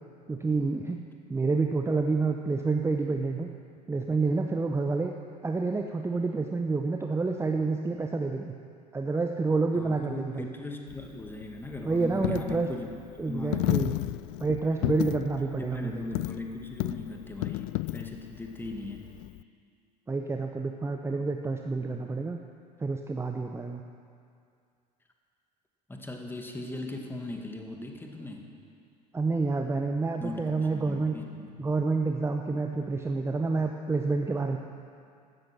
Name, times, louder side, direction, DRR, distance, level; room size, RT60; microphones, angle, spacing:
voice 1, 0.3-3.5 3.9-5.1 5.4-8.5 8.9-10.5 11.8-12.7 13.2-13.9 14.4-16.0 20.1-22.4 22.8-23.8 29.1-31.1 31.6-34.6, right 3 dB, 10° right, 4 dB, 0.9 m, -28 dB
voice 2, 9.7-12.9 13.3-13.7 15.4-19.1 25.9-28.5 30.2-31.6, left 2 dB, 10° left, 3 dB, 2.2 m, -39 dB
Coin (dropping), 10.9-19.4, left 20 dB, 50° left, 0.4 m, -34 dB
16.0 x 13.0 x 6.2 m, 2.4 s
figure-of-eight pair, 70°, 21 cm